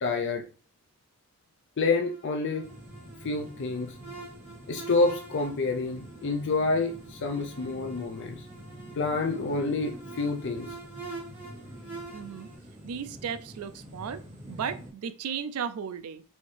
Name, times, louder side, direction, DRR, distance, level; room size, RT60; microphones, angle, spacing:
voice 1, 0.0-0.5 1.8-2.7 3.2-4.0 4.7-8.5 9.0-10.7, left 3 dB, 55° left, 0.5 m, -28 dB
sound 1, 1.8-12.5, right 3 dB, 10° right, 1.5 m, -46 dB
sound 2, 2.6-14.9, equal, 30° right, 1.2 m, -47 dB
voice 2, 12.1-12.5 12.8-14.2 14.5-16.2, right 7 dB, 85° right, 0.4 m, -35 dB
4.2 x 3.4 x 3.2 m
head